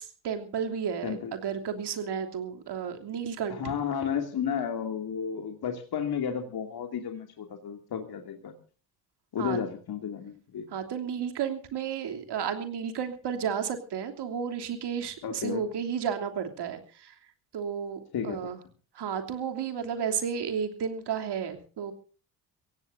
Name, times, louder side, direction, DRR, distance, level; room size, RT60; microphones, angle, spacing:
voice 1, 0.0-3.6 9.4-9.6 10.7-17.2 17.5-18.6 18.9-21.9, right 7 dB, 60° right, 6 dB, 3.2 m, -32 dB
voice 2, 3.6-8.5 9.3-10.7 15.2-15.6 18.1-18.5, left 7 dB, 55° left, 4 dB, 2.6 m, -32 dB
24.5 x 16.5 x 2.7 m, 0.38 s
hypercardioid pair, 55°, 46 cm